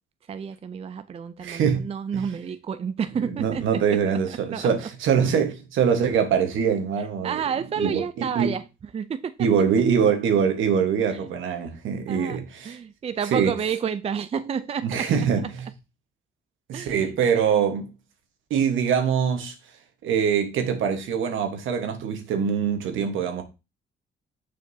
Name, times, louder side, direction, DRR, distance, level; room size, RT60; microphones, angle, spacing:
voice 1, 0.3-4.7 7.0-8.6 8.9-9.5 11.1-11.4 12.1-15.1 16.7-17.6, right 7 dB, 30° right, 0.4 m, -30 dB
voice 2, 1.4-1.9 3.4-7.4 7.8-8.5 9.4-12.8 13.3-13.5 14.8-15.5 16.7-17.9 18.5-19.5 20.0-23.4, right 7 dB, 80° right, 1.3 m, -23 dB
6.7 x 5.1 x 2.7 m
cardioid pair, 90°, 20 cm